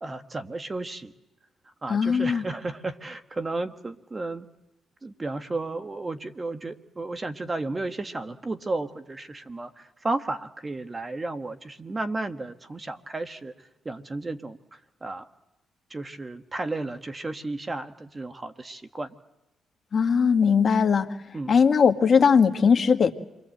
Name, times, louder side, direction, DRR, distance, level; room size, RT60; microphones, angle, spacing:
voice 1, 0.0-1.1 1.8-4.4 5.0-15.3 15.9-19.1 21.3-21.5, right 2 dB, 25° right, 8 dB, 1.5 m, -33 dB
voice 2, 1.9-2.4 19.9-21.1 21.5-23.1, left 6 dB, 45° left, 6 dB, 1.7 m, -19 dB
29.0 x 23.0 x 7.9 m, 0.96 s
cardioid pair, 85°, 0 cm